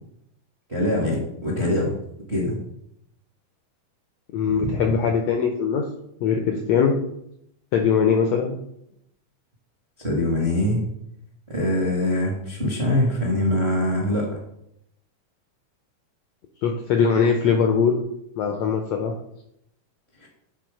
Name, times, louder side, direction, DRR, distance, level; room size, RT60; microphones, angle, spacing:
voice 1, 0.7-1.9 2.3-2.6 4.6-4.8 10.0-10.8 11.5-14.4 20.2-20.3, left 1 dB, 50° right, -2 dB, 0.7 m, -23 dB
voice 2, 4.3-5.8 6.2-6.9 7.7-8.6 16.6-18.0 18.4-19.1, left 6 dB, 85° left, 4 dB, 1.5 m, -21 dB
9.3 x 3.9 x 5.0 m, 0.76 s
omnidirectional pair, 3.8 m